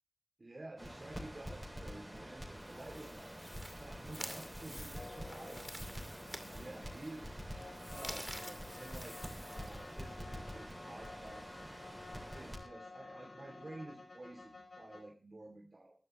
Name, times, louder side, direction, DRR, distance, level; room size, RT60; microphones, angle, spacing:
voice 1, 0.4-3.3 3.6-5.7 6.2-7.3 7.9-11.6 12.3-15.9, right 2 dB, 50° right, 2 dB, 2.7 m, -51 dB
Crackle, 0.8-12.6, equal, 10° right, 7.7 m, -47 dB
sound 1, 2.5-10.2, equal, 5° left, 2.4 m, -50 dB
sound 2, 5.0-15.0, left 3 dB, 70° left, 5.4 m, -53 dB
21.5 x 14.0 x 3.1 m, 0.37 s
wide cardioid pair, 70°, 0 cm